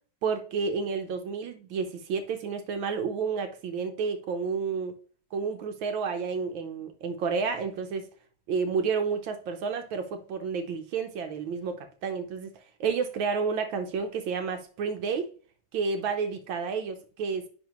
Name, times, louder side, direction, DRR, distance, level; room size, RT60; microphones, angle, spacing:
voice 1, 0.2-5.0 5.3-8.1 8.5-12.5 12.8-15.3 15.7-17.5, right 5 dB, 70° right, 1.4 m, -30 dB
10.0 x 3.7 x 2.9 m
omnidirectional pair, 2.4 m